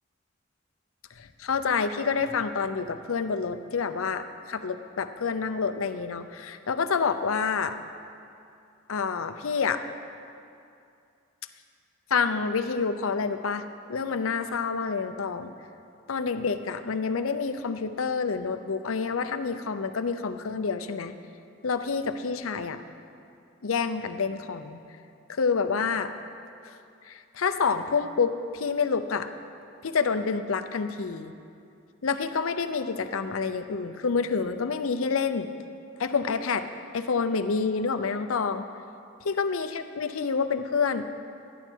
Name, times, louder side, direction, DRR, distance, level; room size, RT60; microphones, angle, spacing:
voice 1, 1.2-7.8 8.9-9.8 12.1-13.6 13.9-15.5 16.1-21.1 21.6-22.8 23.6-24.8 25.3-26.1 26.6-26.8 27.1-29.3 29.8-31.3 32.0-35.5 36.0-36.7 36.9-38.6 39.3-41.1, left 5 dB, 90° left, 9 dB, 0.6 m, -28 dB
13.0 x 11.0 x 4.5 m, 2.5 s
head